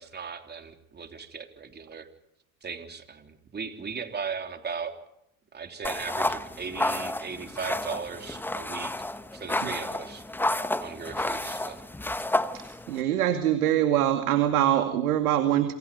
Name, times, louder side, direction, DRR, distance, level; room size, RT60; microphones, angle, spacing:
voice 1, 0.0-2.1 2.6-5.0 5.5-8.9 9.3-10.2 10.8-11.8, right 5 dB, 25° right, 6 dB, 3.4 m, -37 dB
sound 1, 5.8-13.0, left 1 dB, 5° left, 1.1 m, -31 dB
voice 2, 12.9-15.7, right 11 dB, 85° right, 7 dB, 2.4 m, -23 dB
28.5 x 27.0 x 5.5 m, 0.79 s
supercardioid pair, 105°, 43 cm